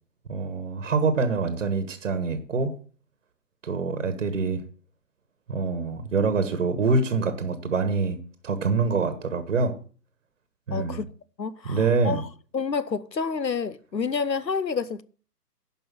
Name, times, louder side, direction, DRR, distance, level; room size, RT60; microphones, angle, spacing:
voice 1, 0.3-2.7 3.6-4.6 5.5-8.2 8.4-9.8 10.7-11.0 11.6-12.2, right 4 dB, 50° right, 1.4 m, -25 dB
voice 2, 10.7-11.1 11.4-12.2 12.5-15.0, left 5 dB, 85° left, 1.0 m, -29 dB
11.5 x 5.3 x 7.5 m
figure-of-eight pair, 140°, 49 cm